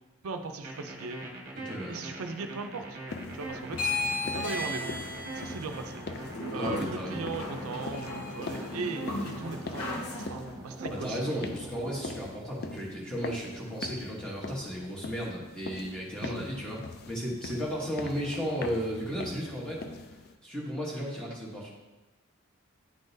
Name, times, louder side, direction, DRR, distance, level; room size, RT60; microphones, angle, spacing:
voice 1, 0.2-1.2 1.9-3.0 3.3-3.9 4.3-5.0 5.3-6.0 6.5-11.4 16.2-16.3 17.5-17.6, right 4 dB, 80° right, 6 dB, 0.5 m, -38 dB
sound 1, 0.6-12.2, right 2 dB, 40° right, 0.9 m, -43 dB
voice 2, 1.5-2.0 6.5-7.3 10.9-19.8 20.4-21.7, equal, 5° left, -5 dB, 1.0 m, -34 dB
sound 2, 3.1-20.4, left 3 dB, 45° left, 0.3 m, -43 dB
sound 3, 3.7-10.3, left 2 dB, 90° left, 0.9 m, -35 dB
9.4 x 3.8 x 2.6 m, 1.1 s
head